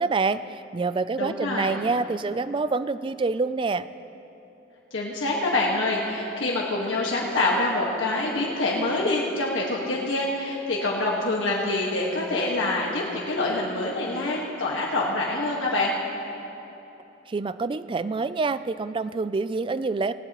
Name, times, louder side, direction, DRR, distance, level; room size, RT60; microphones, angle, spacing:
voice 1, 0.0-3.9 17.3-20.1, right 4 dB, 25° right, 14 dB, 0.3 m, -26 dB
voice 2, 1.2-1.8 4.9-15.9, left 2 dB, 80° left, -3 dB, 1.6 m, -26 dB
19.0 x 17.5 x 3.0 m, 3.0 s
head